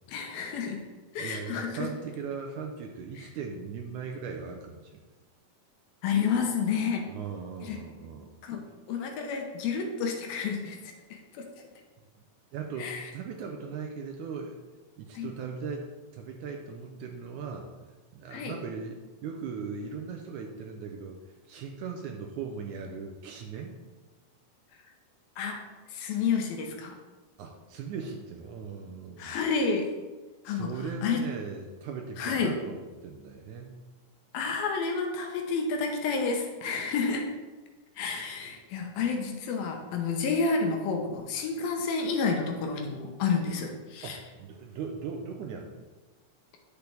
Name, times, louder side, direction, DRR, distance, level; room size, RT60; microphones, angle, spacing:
voice 1, 0.1-0.8 1.1-1.9 6.0-7.1 7.6-7.8 8.4-8.6 8.9-10.8 11.1-11.5 12.8-13.0 15.1-15.3 18.3-18.5 25.4-25.6 25.9-27.0 29.2-29.9 30.5-30.7 31.0-31.2 32.2-32.5 34.3-37.3 38.0-44.2, left 5 dB, 75° left, 2 dB, 2.7 m, -30 dB
voice 2, 1.2-5.0 7.1-8.3 12.5-14.6 15.0-15.9 16.1-17.7 18.1-21.2 21.5-23.7 27.4-29.4 30.5-33.8 44.0-45.8, right 5 dB, 90° right, 2 dB, 1.7 m, -38 dB
10.5 x 6.7 x 3.5 m, 1.2 s
omnidirectional pair, 4.4 m